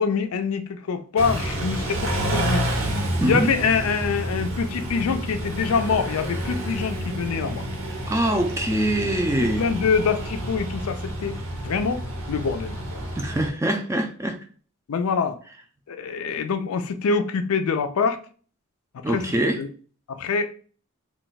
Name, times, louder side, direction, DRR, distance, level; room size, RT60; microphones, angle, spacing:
voice 1, 0.0-2.7 3.2-7.7 9.4-13.0 14.9-15.4 15.9-18.2 18.9-19.7 20.1-20.5, left 5 dB, 90° left, 0.4 m, -25 dB
Car / Idling / Accelerating revving vroom, 1.2-13.5, right 1 dB, 75° right, 0.7 m, -29 dB
voice 2, 3.2-3.5 8.1-9.6 13.2-14.4 19.0-19.6, right 1 dB, 15° right, 0.3 m, -23 dB
2.3 x 2.2 x 3.9 m
head